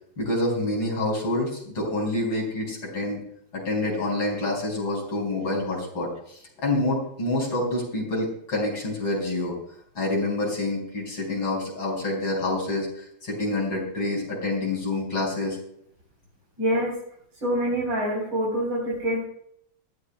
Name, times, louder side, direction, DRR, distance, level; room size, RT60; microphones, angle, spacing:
voice 1, 0.2-3.2 3.5-9.5 10.0-15.6, left 2 dB, 80° left, -1 dB, 6.1 m, -27 dB
voice 2, 16.6-17.0 17.4-19.2, equal, 65° right, -5 dB, 4.7 m, -25 dB
20.0 x 14.5 x 2.3 m, 0.70 s
omnidirectional pair, 2.2 m